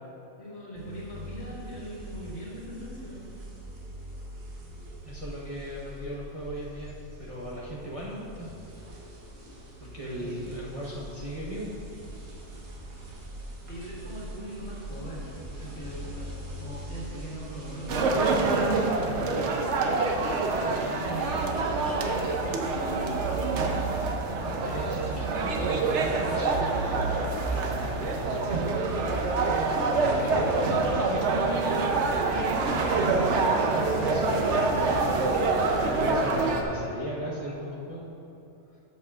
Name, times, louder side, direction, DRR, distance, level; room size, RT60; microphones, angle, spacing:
voice 1, 0.4-3.3 10.2-10.4 13.7-15.3 15.6-16.3 16.6-19.3 20.6-23.5 28.3-28.6 29.9-33.4, right 1 dB, 60° left, -7 dB, 2.4 m, -40 dB
sound 1, 0.7-18.0, equal, 80° right, 1.7 m, -42 dB
voice 2, 5.0-8.5 9.8-12.1 24.6-28.4 30.0-30.3 33.7-38.1, equal, 30° right, -7 dB, 0.9 m, -38 dB
sound 2, 17.9-36.6, right 3 dB, 60° right, 0.9 m, -26 dB
13.0 x 7.1 x 2.4 m, 2.9 s
omnidirectional pair, 1.5 m